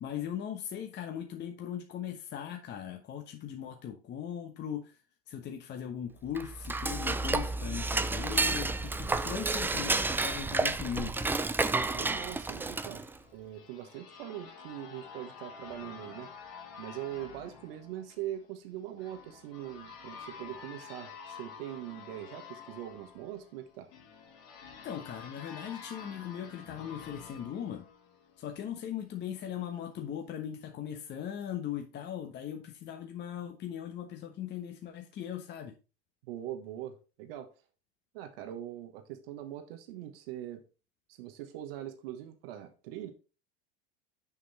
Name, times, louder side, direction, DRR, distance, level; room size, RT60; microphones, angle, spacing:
voice 1, 0.0-5.0 5.3-11.4 24.8-27.8 28.4-35.7, left 9 dB, 35° left, 1.1 m, -39 dB
Dishes pots and pans / Cutlery silverware, 6.3-13.2, right 3 dB, 5° right, 0.4 m, -31 dB
voice 2, 9.2-9.6 11.8-13.0 13.3-16.3 16.8-23.9 36.2-37.5 38.1-40.6 41.1-43.1, right 12 dB, 70° right, 1.3 m, -42 dB
sound 1, 12.9-28.6, left 6 dB, 65° left, 2.4 m, -49 dB
7.1 x 5.4 x 4.1 m
hypercardioid pair, 95°, 30 cm